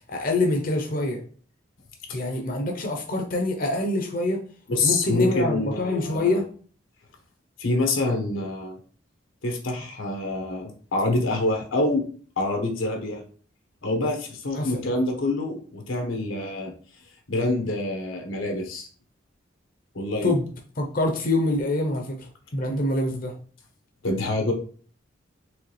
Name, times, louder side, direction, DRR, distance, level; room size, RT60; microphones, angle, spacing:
voice 1, 0.1-1.2 2.1-4.4 4.8-6.4 14.5-14.9 20.2-20.5 20.8-23.3, left 2 dB, 45° left, 2 dB, 0.7 m, -25 dB
voice 2, 4.7-6.4 7.6-8.8 9.4-12.1 12.4-13.2 13.8-16.7 17.3-18.9 19.9-20.4 24.0-24.5, left 2 dB, 90° left, 3 dB, 1.2 m, -26 dB
4.8 x 3.3 x 3.2 m, 0.43 s
head